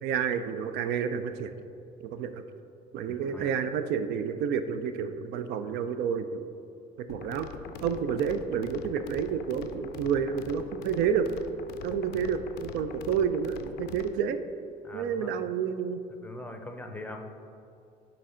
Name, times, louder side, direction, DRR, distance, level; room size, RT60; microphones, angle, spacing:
voice 1, 0.0-1.5 2.0-2.4 2.9-6.5 7.0-7.5 7.8-11.3 11.8-14.4 14.9-16.0, right 7 dB, 80° right, 10 dB, 0.4 m, -29 dB
voice 2, 3.0-3.5 14.8-15.3 16.2-17.3, left 2 dB, 10° left, 4 dB, 0.5 m, -42 dB
sound 1, 7.1-14.1, left 6 dB, 85° left, 0.4 m, -44 dB
8.0 x 3.3 x 3.7 m, 2.7 s
cardioid pair, 110°, 17 cm